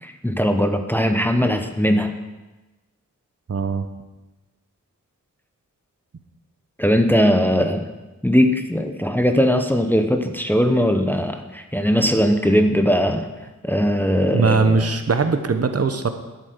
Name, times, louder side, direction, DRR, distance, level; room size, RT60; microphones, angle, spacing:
voice 1, 0.0-2.1 6.8-7.8 8.2-13.3 13.6-14.9, equal, 5° left, 5 dB, 0.8 m, -19 dB
voice 2, 3.5-3.9 14.3-16.1, right 4 dB, 50° right, 8 dB, 1.0 m, -20 dB
11.5 x 8.3 x 6.7 m, 1.1 s
wide cardioid pair, 130°, 31 cm